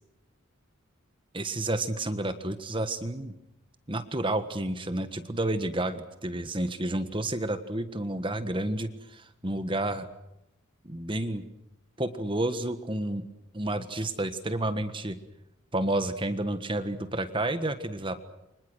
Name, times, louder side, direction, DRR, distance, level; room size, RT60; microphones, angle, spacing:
voice 1, 1.3-3.4 3.9-10.1 10.8-11.4 12.0-13.2 13.5-15.2 15.7-18.2, right 1 dB, 25° right, 10 dB, 1.5 m, -30 dB
29.0 x 25.5 x 6.4 m, 0.88 s
head